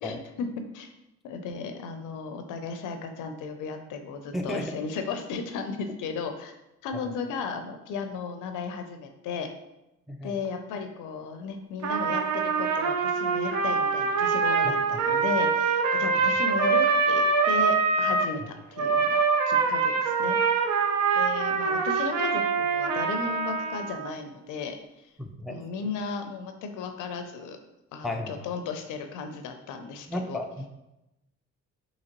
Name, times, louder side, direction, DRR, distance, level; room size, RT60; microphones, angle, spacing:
voice 1, 0.0-0.9 1.2-6.6 6.8-9.5 10.2-20.4 21.1-24.8 25.5-27.6 27.9-30.4, left 5 dB, 85° left, 6 dB, 0.5 m, -35 dB
voice 2, 4.3-4.8 7.0-7.1 10.1-10.3 14.6-14.7 25.2-25.6 28.0-28.3 30.1-30.7, left 1 dB, ahead, 3 dB, 0.3 m, -33 dB
Trumpet, 11.8-18.3 18.8-24.1, right 5 dB, 65° right, 0.5 m, -24 dB
3.8 x 2.9 x 2.9 m, 0.92 s
cardioid pair, 90°, 30 cm